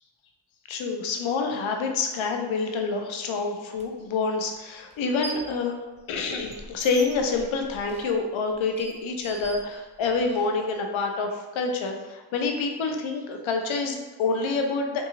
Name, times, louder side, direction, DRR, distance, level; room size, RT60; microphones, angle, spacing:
voice 1, 0.7-5.7 6.1-15.1, left 4 dB, 85° left, 3 dB, 0.6 m, -27 dB
sound 1, 3.8-3.9 4.9-5.6 5.9-10.3, right 2 dB, 15° right, 0.4 m, -42 dB
3.8 x 2.3 x 2.8 m, 1.2 s
cardioid pair, 70°, 46 cm